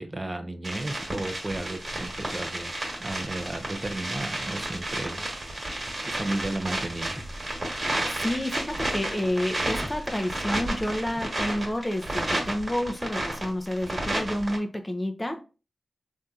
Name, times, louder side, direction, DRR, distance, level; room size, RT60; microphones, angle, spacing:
voice 1, 0.0-2.7 3.0-5.3 5.7-7.2, right 2 dB, 30° right, 0.5 m, -34 dB
sound 1, 0.6-14.6, right 1 dB, 50° right, 1.4 m, -32 dB
sound 2, 7.2-12.5, equal, ahead, 1.1 m, -43 dB
voice 2, 7.8-15.4, left 1 dB, 20° left, 0.6 m, -30 dB
3.4 x 2.7 x 2.4 m
cardioid pair, 50°, 0 cm